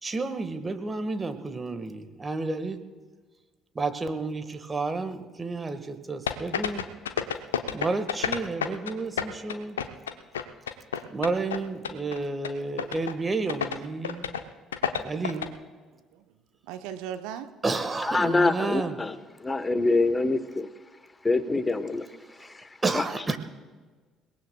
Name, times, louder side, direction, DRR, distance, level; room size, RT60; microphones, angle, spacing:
voice 1, 0.0-2.8 3.7-6.9 7.7-9.8 11.1-14.3 15.0-15.5 17.6-19.0 22.4-22.5 22.8-23.4, right 3 dB, 25° right, 9 dB, 1.5 m, -31 dB
sound 1, 6.3-8.9 9.2-11.6 11.8-12.2 12.4-12.5 12.8-13.1 13.5-13.8 14.0-14.4 14.7-15.5, left 8 dB, 80° left, 0.7 m, -29 dB
voice 2, 16.6-17.5, right 9 dB, 65° right, 8 dB, 0.8 m, -37 dB
voice 3, 18.1-19.1 19.4-20.7 21.2-22.1 22.4-22.7 22.9-23.0, left 3 dB, 20° left, 12 dB, 1.1 m, -25 dB
29.0 x 18.5 x 2.3 m, 1.4 s
figure-of-eight pair, 50°, 0 cm